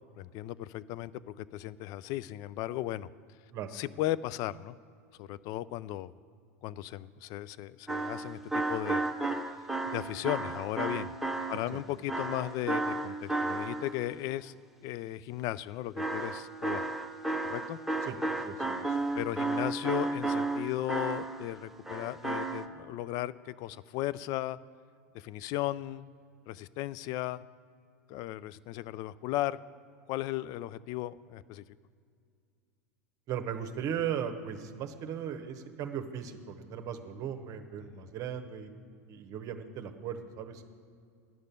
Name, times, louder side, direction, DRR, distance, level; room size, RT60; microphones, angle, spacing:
voice 1, 0.2-3.1 3.7-4.8 5.2-6.1 6.6-8.4 8.7-9.0 9.9-11.1 11.5-14.6 14.8-16.9 17.4-17.8 19.1-24.6 25.1-26.1 26.5-27.4 28.1-29.6 30.1-31.6 37.9-38.0, left 14 dB, 50° left, 18 dB, 0.4 m, -36 dB
sound 1, 7.9-14.0 16.0-21.6 21.9-22.7, right 2 dB, 5° right, 0.8 m, -33 dB
voice 2, 18.0-19.0 33.3-38.7 39.1-40.6, right 8 dB, 40° right, 6 dB, 1.0 m, -37 dB
10.5 x 6.6 x 9.0 m, 2.3 s
hypercardioid pair, 90°, 9 cm